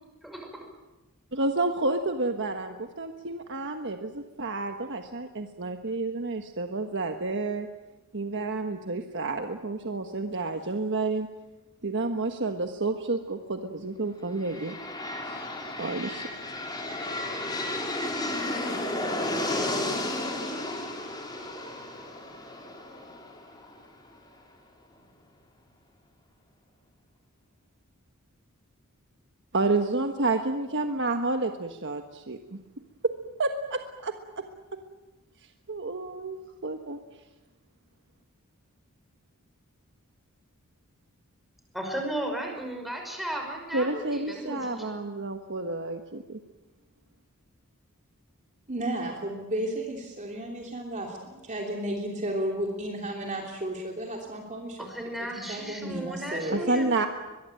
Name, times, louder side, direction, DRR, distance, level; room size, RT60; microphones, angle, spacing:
voice 1, 1.3-7.7 8.1-11.3 11.8-14.7 15.8-16.3 29.5-32.6 33.0-33.1 33.4-34.4 34.7-34.8 35.7-37.0 43.7-46.4 56.5-57.1, right 3 dB, 55° right, 5 dB, 1.4 m, -30 dB
sound 1, 14.3-24.1, left 1 dB, 20° left, 4.3 m, -33 dB
voice 2, 41.7-45.0 54.8-57.1, right 1 dB, ahead, 2 dB, 5.7 m, -35 dB
voice 3, 48.7-54.9 55.2-56.9, right 1 dB, 35° right, 1 dB, 3.1 m, -33 dB
22.5 x 22.5 x 9.0 m, 1.1 s
head